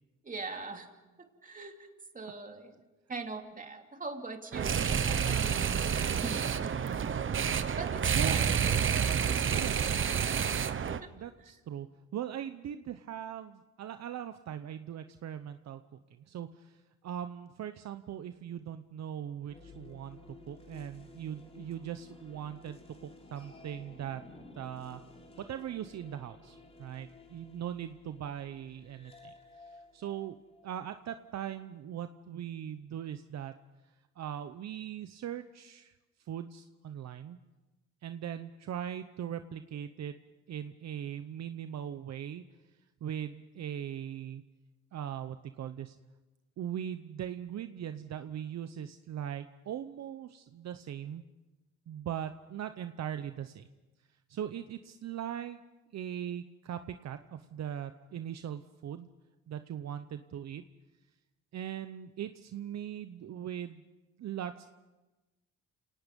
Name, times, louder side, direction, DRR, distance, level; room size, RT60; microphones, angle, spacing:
voice 1, 0.2-0.9 1.2-1.9 2.1-2.8 3.1-6.6 7.8-10.6 11.0-11.1, right 3 dB, 25° right, 4 dB, 2.8 m, -42 dB
sound 1, 4.5-11.0, right 7 dB, 40° right, 1.1 m, -29 dB
voice 2, 8.1-8.9 9.5-10.1 11.1-11.9 12.1-16.0 16.3-20.2 20.5-24.2 24.6-25.0 25.5-30.4 30.6-33.5 34.2-35.9 36.3-37.4 38.0-40.1 40.5-42.4 43.0-44.4 44.9-46.0 46.6-51.2 51.9-53.7 54.3-55.6 55.9-59.1 59.5-60.6 61.5-63.8 64.2-64.7, right 10 dB, 60° right, 10 dB, 0.9 m, -40 dB
sound 2, 19.4-31.3, left 2 dB, 20° left, 3.7 m, -54 dB
29.0 x 18.5 x 5.3 m, 1.1 s
cardioid pair, 90°, 30 cm